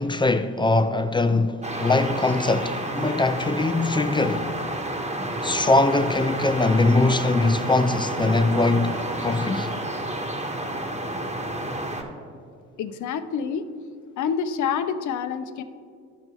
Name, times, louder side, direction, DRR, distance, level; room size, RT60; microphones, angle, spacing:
voice 1, 0.0-4.5 5.4-9.7, left 2 dB, 15° left, 0.3 m, -22 dB
sound 1, 1.6-12.0, right 1 dB, 20° right, 1.2 m, -30 dB
voice 2, 12.8-13.6 14.2-15.6, left 7 dB, 55° left, 0.6 m, -27 dB
12.5 x 5.3 x 3.1 m
hypercardioid pair, 60°, 36 cm